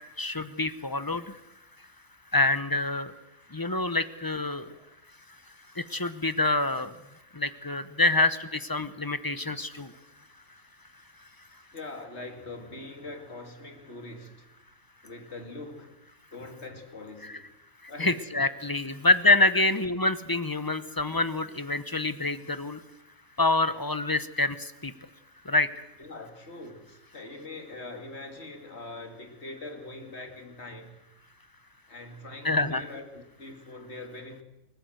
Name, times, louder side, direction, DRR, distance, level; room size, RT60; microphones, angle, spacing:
voice 1, 0.2-1.4 2.3-3.1 3.5-4.7 5.8-6.9 7.3-9.9 17.8-22.8 23.4-24.9 25.4-25.7 32.4-32.8, left 2 dB, 20° left, 0.8 m, -26 dB
voice 2, 4.6-4.9 11.7-14.5 15.0-16.0 16.3-17.5 17.9-18.2 18.9-19.0 19.5-19.6 26.0-31.0 31.9-34.4, left 2 dB, 50° left, 2.7 m, -43 dB
28.5 x 15.0 x 7.9 m
omnidirectional pair, 1.4 m